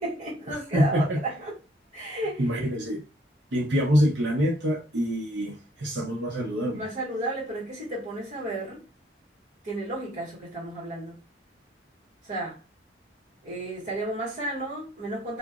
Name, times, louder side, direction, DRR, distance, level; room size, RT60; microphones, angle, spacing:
voice 1, 0.0-1.5 1.9-2.4 6.8-8.8 9.6-11.1 12.2-12.6 13.4-15.4, right 2 dB, 45° right, 1.3 m, -33 dB
voice 2, 0.5-1.2 2.4-3.0 3.5-6.8, equal, 85° right, 0.9 m, -25 dB
3.0 x 2.4 x 2.3 m
head